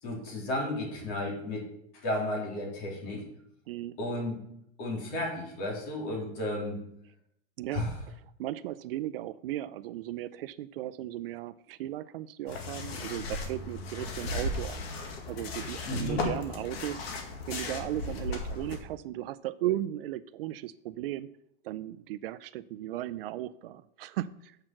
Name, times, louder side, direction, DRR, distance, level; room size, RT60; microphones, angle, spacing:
voice 1, 0.0-1.7 2.0-3.3 4.0-4.4 4.8-6.8 7.7-7.9 13.9-14.3 15.8-16.3, left 1 dB, 40° left, -1 dB, 3.2 m, -33 dB
voice 2, 3.7-4.0 7.6-7.8 8.4-14.9 15.3-17.1 17.5-21.3 21.6-24.6, right 14 dB, 65° right, 15 dB, 0.5 m, -36 dB
sound 1, 12.5-18.8, left 3 dB, 75° left, 2.0 m, -36 dB
7.6 x 6.7 x 5.9 m, 0.75 s
supercardioid pair, 170°, 31 cm